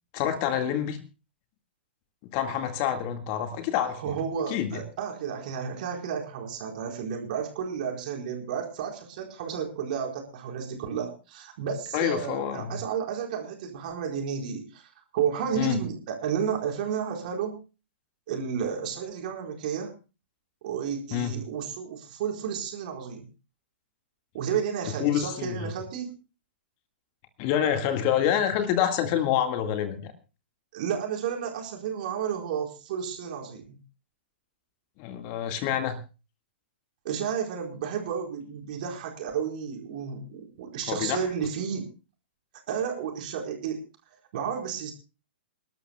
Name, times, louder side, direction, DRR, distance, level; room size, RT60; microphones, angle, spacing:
voice 1, 0.1-1.0 2.2-4.2 4.5-4.8 11.9-12.8 15.5-15.8 21.1-21.4 25.0-25.7 27.4-30.1 35.0-36.0 40.9-41.2, left 9 dB, 35° left, 8 dB, 1.9 m, -27 dB
voice 2, 3.9-17.6 18.3-19.9 20.6-23.3 24.3-26.1 30.7-33.8 37.0-41.9 42.7-43.8 44.3-44.9, right 7 dB, 45° right, 1 dB, 4.6 m, -32 dB
28.0 x 12.5 x 2.3 m, 0.32 s
figure-of-eight pair, 110°, 6 cm